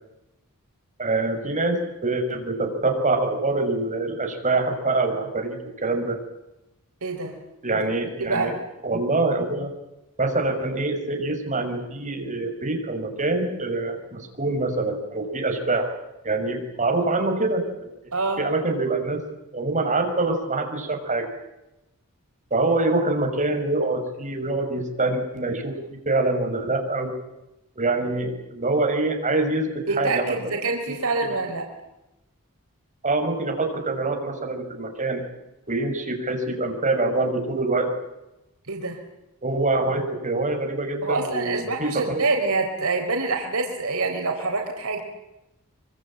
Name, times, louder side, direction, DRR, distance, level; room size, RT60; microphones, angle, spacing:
voice 1, 1.0-6.2 7.6-8.6 8.8-9.8 10.2-15.9 16.2-17.9 18.4-19.2 19.5-21.3 22.5-27.1 27.8-30.6 30.9-31.0 31.2-31.4 33.0-35.2 35.7-37.9 39.4-42.2, right 2 dB, 35° right, 3 dB, 6.2 m, -25 dB
voice 2, 7.0-7.3 8.2-8.5 18.1-18.4 29.9-31.6 38.7-39.0 41.0-45.0, right 3 dB, 80° right, 3 dB, 4.1 m, -26 dB
25.0 x 25.0 x 8.8 m, 0.94 s
head